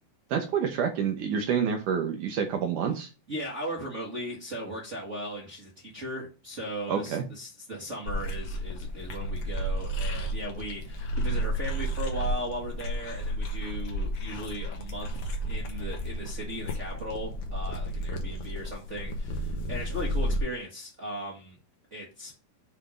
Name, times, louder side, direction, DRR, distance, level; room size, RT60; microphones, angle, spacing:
voice 1, 0.3-3.1 6.9-7.2, right 7 dB, 70° right, 4 dB, 2.2 m, -28 dB
voice 2, 3.3-21.6 21.9-22.4, equal, 40° right, -4 dB, 1.0 m, -37 dB
sound 1, 8.1-20.4, equal, 75° left, 1.3 m, -32 dB
8.1 x 3.6 x 5.0 m, 0.32 s
omnidirectional pair, 4.3 m